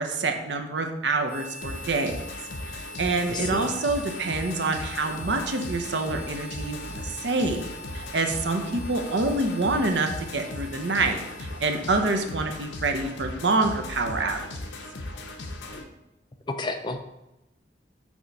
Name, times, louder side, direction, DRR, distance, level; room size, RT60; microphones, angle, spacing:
voice 1, 0.0-2.2 2.7-14.5, right 3 dB, 75° right, 5 dB, 0.7 m, -27 dB
Harmonica, 1.2-12.3, equal, 50° left, 0.9 m, -43 dB
sound 1, 1.6-15.8, left 2 dB, 80° left, 0.7 m, -38 dB
voice 2, 3.3-3.7 16.5-17.1, left 2 dB, 25° left, 6 dB, 0.4 m, -31 dB
6.2 x 3.0 x 5.4 m, 0.93 s
head